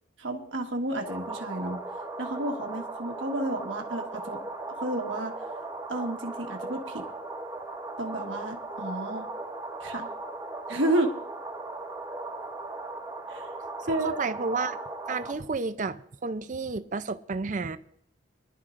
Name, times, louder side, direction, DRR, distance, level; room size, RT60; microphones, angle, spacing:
voice 1, 0.2-1.8 2.2-4.4 4.8-5.3 5.9-7.0 8.0-9.2 9.8-10.1 10.7-11.1 13.3-13.5 13.9-14.2, right 1 dB, 85° right, 1.5 m, -31 dB
sound 1, 1.0-15.3, right 2 dB, 15° right, 1.4 m, -37 dB
voice 2, 13.8-14.8 15.1-17.8, right 4 dB, 40° right, 0.5 m, -31 dB
23.5 x 11.5 x 2.6 m
head